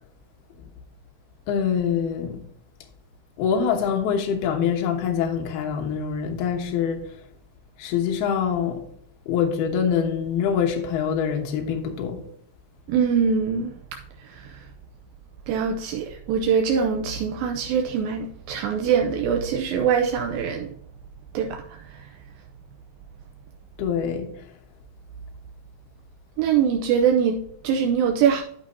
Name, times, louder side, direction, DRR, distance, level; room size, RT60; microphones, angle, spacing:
voice 1, 1.5-2.4 3.4-7.0 7.8-8.8 9.3-12.2 23.8-24.3, left 7 dB, 75° left, 2.9 m, -24 dB
voice 2, 12.9-13.8 14.2-14.7 15.5-20.7 21.3-22.1 26.4-28.4, right 7 dB, 80° right, 2.1 m, -23 dB
12.0 x 6.2 x 2.7 m
omnidirectional pair, 4.8 m